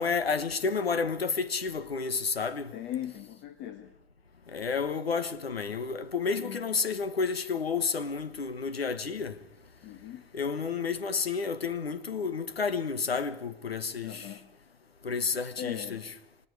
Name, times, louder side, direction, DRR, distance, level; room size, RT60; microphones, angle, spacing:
voice 1, 0.0-2.7 4.5-9.4 10.3-14.3 15.0-16.1, left 5 dB, 85° left, 1.3 m, -30 dB
voice 2, 2.7-3.9 6.2-6.6 9.8-10.3 14.0-14.5 15.6-16.1, left 11 dB, 40° left, 1.6 m, -39 dB
28.5 x 24.5 x 4.8 m
figure-of-eight pair, 95°, 29 cm